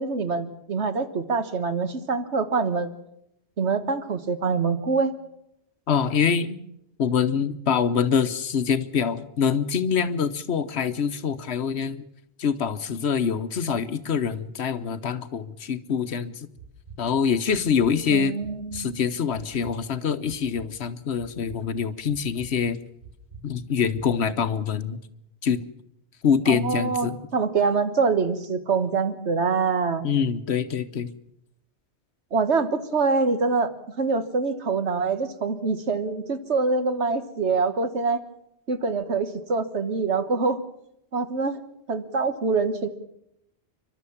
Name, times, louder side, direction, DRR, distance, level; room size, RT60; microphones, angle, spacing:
voice 1, 0.0-2.9 3.6-5.1 18.1-19.0 26.5-30.1 32.3-33.7 34.0-38.2 38.7-40.6 41.1-41.6 41.9-42.9, right 4 dB, 80° right, 10 dB, 1.7 m, -25 dB
voice 2, 5.9-6.5 7.0-12.0 12.4-16.5 17.0-18.4 18.7-22.8 23.4-25.0 25.4-25.6 26.2-27.2 30.0-31.1, left 7 dB, 70° left, 13 dB, 1.2 m, -25 dB
sound 1, 16.6-17.0 17.5-17.9 18.4-18.8 19.3-19.7 20.2-20.7 21.2-21.6 22.1-22.5 23.0-23.4 23.9-24.1, right 5 dB, 65° right, 5.4 m, -44 dB
29.5 x 12.0 x 7.2 m, 0.79 s
omnidirectional pair, 1.1 m